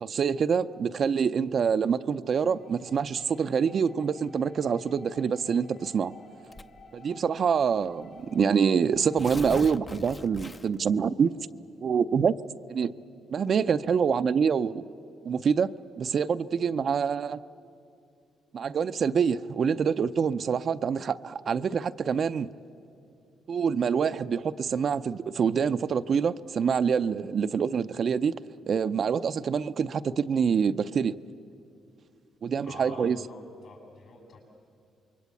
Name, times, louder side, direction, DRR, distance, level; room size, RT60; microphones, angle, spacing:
voice 1, 0.0-6.1 6.9-11.3 11.8-12.4 12.7-12.9 13.3-14.9 15.2-15.7 16.0-17.4 18.5-22.5 23.5-28.4 28.7-31.1 32.4-33.2, right 6 dB, 55° right, 11 dB, 0.6 m, -26 dB
sound 1, 2.3-9.6, left 2 dB, 80° left, 6.6 m, -53 dB
Tearing, 6.5-6.9 7.8-7.9 8.2-8.3 8.9-10.9, left 3 dB, 25° left, 0.7 m, -40 dB
voice 2, 32.6-34.4, left 3 dB, 60° left, 2 dB, 7.7 m, -47 dB
26.5 x 22.5 x 8.4 m, 2.5 s
cardioid pair, 90°, 0 cm